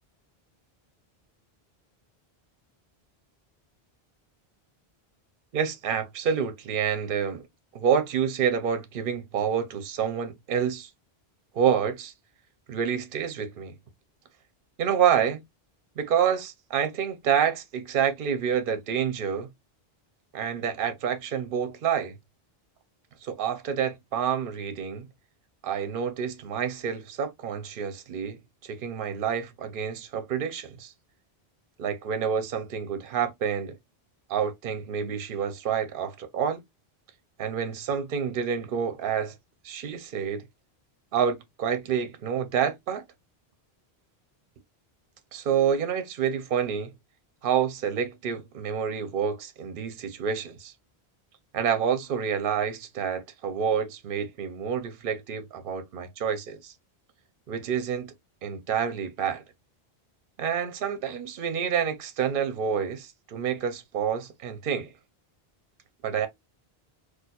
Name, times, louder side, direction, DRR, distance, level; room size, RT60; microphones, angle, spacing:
voice 1, 5.5-7.4 7.7-10.9 11.5-12.1 12.7-13.7 14.8-15.4 16.0-19.5 20.3-22.1 23.2-25.1 25.6-30.9 31.8-33.7 34.3-36.6 37.4-39.3 39.6-40.5 41.1-43.0 45.3-46.9 47.4-50.7 51.5-56.7 57.5-58.1 58.4-59.4 60.4-64.9 66.0-66.3, right 7 dB, 60° right, 0.8 m, -28 dB
4.2 x 2.4 x 2.3 m
omnidirectional pair, 1.1 m